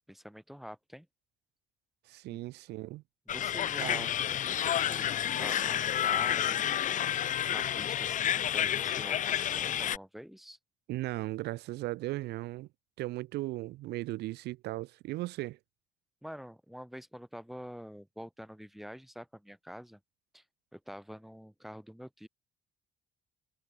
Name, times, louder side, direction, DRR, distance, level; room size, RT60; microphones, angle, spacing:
voice 1, 0.1-1.1 2.3-2.4 3.3-4.1 4.7-5.1 5.4-6.7 7.5-10.6 16.2-20.0 20.3-20.4 20.7-22.3, equal, ahead, 3.7 m, -46 dB
voice 2, 2.1-3.0 3.8-4.1 10.9-12.7 13.0-15.6, right 18 dB, 80° right, 0.9 m, -37 dB
sound 1, 3.3-10.0, left 10 dB, 50° left, 0.9 m, -30 dB
cardioid pair, 110°, 17 cm